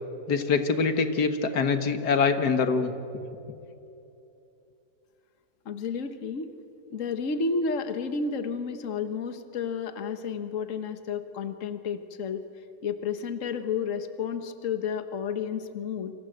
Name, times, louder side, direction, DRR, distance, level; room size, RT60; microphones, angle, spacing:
voice 1, 0.3-2.9, left 5 dB, 90° left, 8 dB, 2.1 m, -24 dB
voice 2, 5.6-6.5 6.9-12.4 12.8-16.1, left 5 dB, 55° left, 9 dB, 1.6 m, -31 dB
29.0 x 26.0 x 7.9 m, 2.8 s
omnidirectional pair, 1.7 m